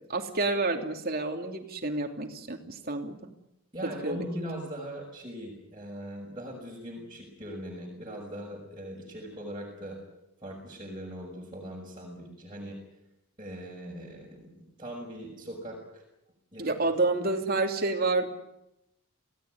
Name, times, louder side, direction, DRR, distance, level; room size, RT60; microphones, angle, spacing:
voice 1, 0.1-3.2 3.8-4.2 16.6-18.3, right 3 dB, 45° right, 3 dB, 3.1 m, -29 dB
voice 2, 3.7-10.0 10.4-12.8 13.4-16.0 16.5-16.8, equal, 20° right, -4 dB, 6.1 m, -40 dB
28.0 x 17.5 x 9.6 m, 0.87 s
head